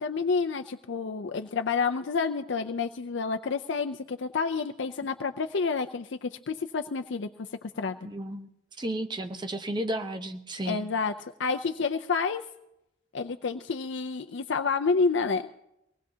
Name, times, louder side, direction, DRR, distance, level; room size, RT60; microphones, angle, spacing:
voice 1, 0.0-7.3 7.8-8.0 10.7-11.1 11.4-12.4 13.1-15.5, left 4 dB, 65° left, 7 dB, 0.5 m, -29 dB
voice 2, 8.0-8.5 8.8-10.8, right 1 dB, 25° right, 6 dB, 0.8 m, -33 dB
23.5 x 18.5 x 2.8 m, 0.85 s
head